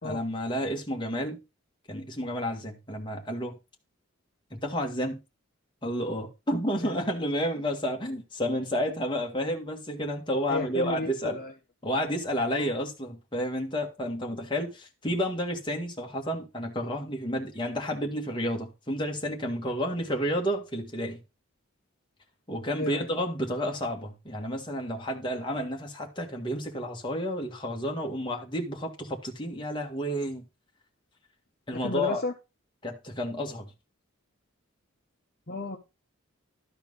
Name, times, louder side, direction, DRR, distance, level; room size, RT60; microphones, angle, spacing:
voice 1, 0.0-1.4 1.9-3.6 4.5-5.2 5.8-11.4 11.8-21.2 22.5-30.4 31.7-32.2 32.8-33.7, equal, 25° left, 1.8 m, -31 dB
voice 2, 10.5-11.5 12.5-12.8 22.7-23.1 31.7-32.3 35.5-35.8, left 2 dB, 45° left, 1.1 m, -33 dB
12.5 x 4.5 x 5.5 m
head